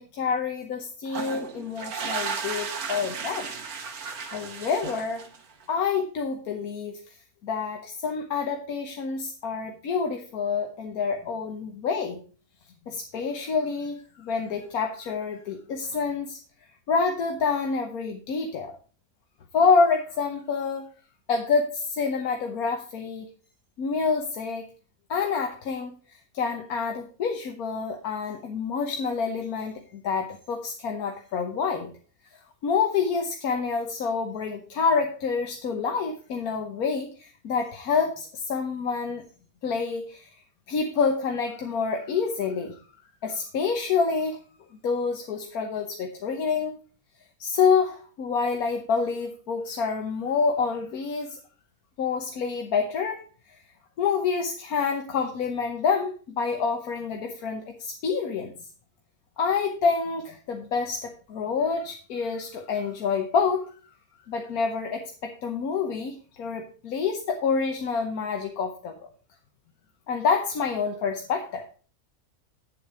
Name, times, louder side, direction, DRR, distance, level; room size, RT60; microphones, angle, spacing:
voice 1, 0.0-3.5 4.3-5.2 5.7-7.2 7.4-12.2 12.9-16.4 16.9-18.8 19.5-20.9 21.3-23.3 23.8-24.7 25.1-31.9 32.6-39.2 39.6-40.3 40.7-42.8 43.2-44.4 44.8-46.7 47.4-51.4 52.0-53.2 54.0-58.5 59.4-63.7 64.3-69.1 70.1-71.6, left 5 dB, 80° left, 3 dB, 1.4 m, -27 dB
sound 1, 1.1-5.6, right 5 dB, 80° right, 1.5 m, -34 dB
8.9 x 7.7 x 4.7 m, 0.39 s
omnidirectional pair, 1.5 m